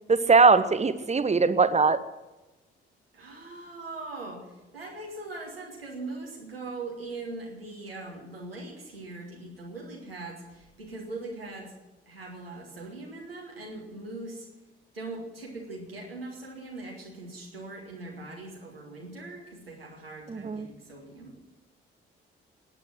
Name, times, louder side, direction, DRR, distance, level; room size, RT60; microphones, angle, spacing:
voice 1, 0.1-2.0 20.3-20.7, right 4 dB, 25° right, 12 dB, 1.0 m, -21 dB
voice 2, 3.1-11.7 12.1-14.5 14.9-21.4, right 2 dB, 85° right, -2 dB, 2.3 m, -41 dB
18.0 x 9.4 x 6.2 m, 1.1 s
figure-of-eight pair, 40°, 29 cm